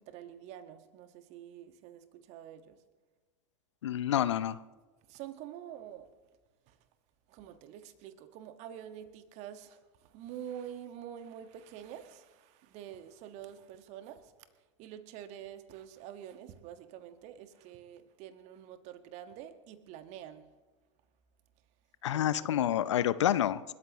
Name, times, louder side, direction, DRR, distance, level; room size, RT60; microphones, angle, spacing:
voice 1, 0.0-2.8 5.1-6.1 6.7-6.8 7.3-14.3 14.8-20.5 22.1-23.3, right 10 dB, 45° right, 9 dB, 1.7 m, -47 dB
voice 2, 3.8-4.6 22.0-23.7, left 11 dB, 70° left, 16 dB, 0.7 m, -28 dB
29.5 x 13.5 x 3.1 m, 1.3 s
figure-of-eight pair, 85°, 16 cm